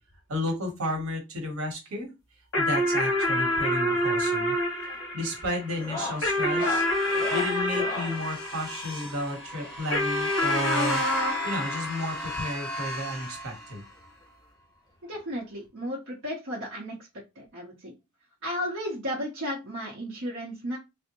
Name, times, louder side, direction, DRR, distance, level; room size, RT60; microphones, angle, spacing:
voice 1, 0.3-2.1 2.6-4.5 4.9-6.9 7.3-11.0 11.4-13.8, equal, 70° right, 2 dB, 1.1 m, -32 dB
sound 1, 2.5-9.2 9.9-12.7, left 1 dB, 65° left, 1.2 m, -28 dB
sound 2, 4.1-4.5 4.8-5.1 5.7-8.2 9.5-10.9 11.9-12.0 12.3-12.4 12.8-12.9 14.2-14.3 15.6-15.7, left 2 dB, 20° left, 0.5 m, -38 dB
sound 3, 5.8-14.1, left 1 dB, ahead, 1.2 m, -36 dB
voice 2, 15.0-17.0 17.4-17.9 18.4-20.8, equal, 55° right, -5 dB, 0.8 m, -34 dB
3.3 x 2.0 x 2.9 m, 0.24 s
head